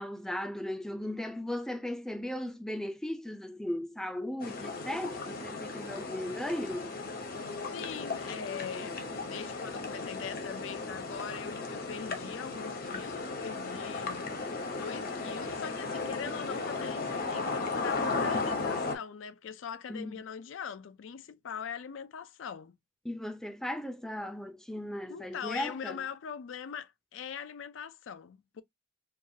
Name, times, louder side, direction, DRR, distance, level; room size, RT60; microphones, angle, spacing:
voice 1, 0.0-7.0 19.9-20.2 23.0-26.0, left 1 dB, 5° left, 0.5 m, -37 dB
sound 1, 4.4-18.9, left 3 dB, 50° left, 0.9 m, -35 dB
voice 2, 7.7-14.3 14.8-22.8 25.1-28.6, left 7 dB, 75° left, 0.4 m, -42 dB
4.6 x 2.3 x 2.7 m
head